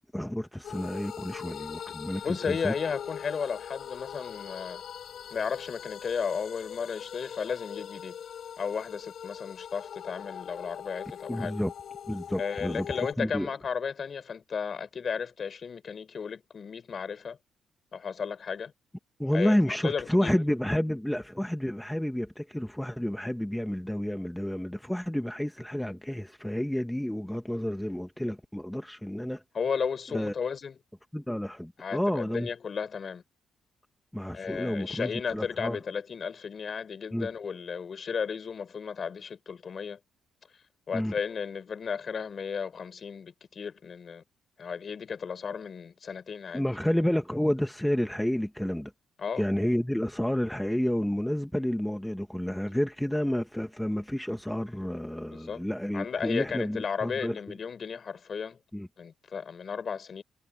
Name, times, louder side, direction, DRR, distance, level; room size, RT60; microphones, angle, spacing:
voice 1, 0.1-2.7 11.3-11.7 12.1-12.9 13.2-13.5 19.2-29.4 30.1-30.3 31.1-32.5 34.1-35.8 37.1-37.3 40.9-41.1 46.5-48.9 49.4-57.4 58.7-58.9, equal, 5° left, 1.4 m, -30 dB
sound 1, 0.6-13.1, left 9 dB, 60° left, 4.1 m, -42 dB
voice 2, 2.2-4.8 5.3-8.2 8.6-11.5 12.4-17.4 17.9-18.7 19.3-20.4 29.5-30.8 31.8-33.2 34.3-40.0 40.9-44.2 44.6-46.7 49.2-49.5 55.3-55.6 55.9-58.6 59.0-60.2, left 6 dB, 45° left, 5.9 m, -34 dB
cardioid pair, 90°, 0 cm